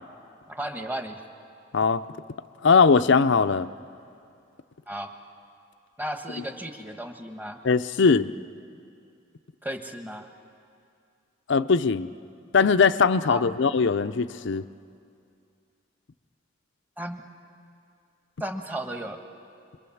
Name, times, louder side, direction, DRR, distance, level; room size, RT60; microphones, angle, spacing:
voice 1, 0.5-1.2 4.9-5.1 6.0-7.6 9.6-10.3 13.3-13.4 17.0-17.3 18.4-19.2, right 1 dB, 10° right, 5 dB, 1.2 m, -34 dB
voice 2, 2.6-3.7 7.6-8.3 11.5-12.1 12.5-14.6, left 5 dB, 65° left, 13 dB, 0.6 m, -20 dB
25.5 x 22.5 x 7.2 m, 2.5 s
head